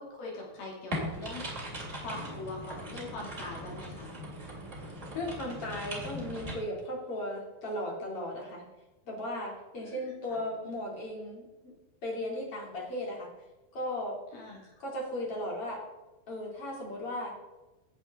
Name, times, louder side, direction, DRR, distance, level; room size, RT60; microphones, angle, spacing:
voice 1, 0.0-1.4 2.0-4.1 9.8-10.4 14.3-14.7, left 2 dB, 65° left, -2 dB, 4.2 m, -42 dB
sound 1, 0.9-6.5, equal, 20° right, 2.7 m, -39 dB
voice 2, 5.1-8.6 9.0-11.8 12.0-13.3 13.7-14.2 14.8-15.8 16.3-17.3, left 1 dB, 40° left, -2 dB, 3.3 m, -36 dB
17.0 x 8.9 x 3.7 m, 1.1 s
omnidirectional pair, 4.6 m